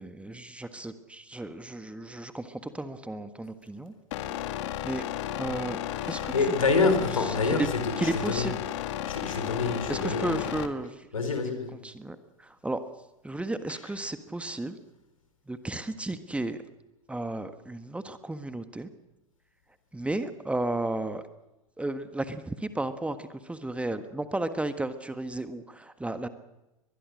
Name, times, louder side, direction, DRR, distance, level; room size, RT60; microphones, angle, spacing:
voice 1, 0.0-3.9 4.8-5.0 5.4-5.8 6.0-6.3 6.8-7.0 7.5-7.7 8.0-8.5 9.9-11.1 11.8-12.8 13.2-14.8 15.5-16.6 17.1-18.9 19.9-21.2 21.8-26.3, right 2 dB, 5° right, 10 dB, 1.5 m, -33 dB
sound 1, 4.1-10.7, left 12 dB, 60° left, 1.8 m, -34 dB
voice 2, 6.1-8.5 9.0-10.4 11.1-11.8, left 4 dB, 85° left, 8 dB, 4.2 m, -27 dB
22.5 x 20.5 x 6.4 m, 0.98 s
figure-of-eight pair, 90°, 17 cm